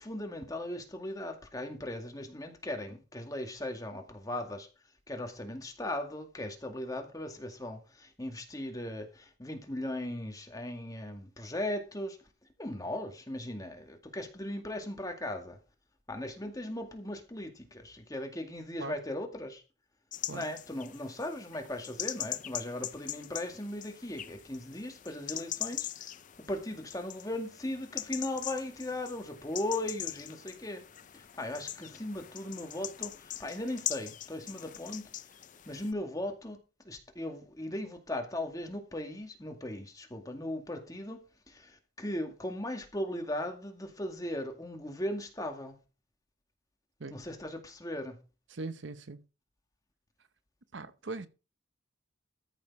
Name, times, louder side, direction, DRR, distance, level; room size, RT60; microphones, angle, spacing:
voice 1, 0.0-4.7 5.1-12.2 12.6-15.6 16.1-19.6 20.3-25.9 26.4-30.8 31.1-35.0 35.7-36.6 36.8-45.8 47.1-48.2, left 1 dB, 15° left, 2.1 m, -38 dB
sound 1, 20.1-35.9, left 12 dB, 40° left, 0.5 m, -42 dB
voice 2, 48.5-49.3 50.7-51.3, right 3 dB, 60° right, 0.8 m, -40 dB
14.0 x 6.5 x 4.8 m
head